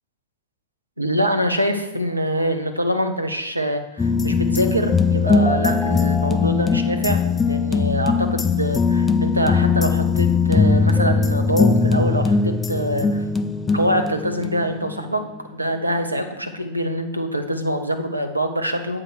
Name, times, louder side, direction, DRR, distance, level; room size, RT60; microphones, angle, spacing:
voice 1, 1.0-13.2 13.7-15.2 15.5-19.0, equal, 85° right, 6 dB, 0.6 m, -24 dB
sound 1, 4.0-15.1 15.4-15.5, left 4 dB, 15° left, 0.3 m, -20 dB
8.0 x 3.7 x 6.2 m, 0.99 s
figure-of-eight pair, 90°, 0 cm